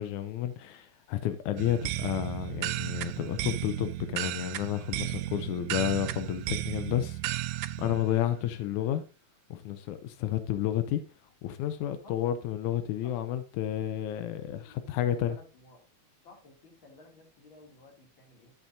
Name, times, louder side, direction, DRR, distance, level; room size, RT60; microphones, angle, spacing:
voice 1, 0.0-9.0 9.5-11.0 11.4-15.4, left 11 dB, 90° left, 2.1 m, -31 dB
sound 1, 1.6-8.0, right 15 dB, 85° right, 2.0 m, -34 dB
voice 2, 14.6-15.8 16.2-18.5, left 2 dB, 45° left, 3.1 m, -54 dB
11.5 x 7.4 x 2.7 m
omnidirectional pair, 3.3 m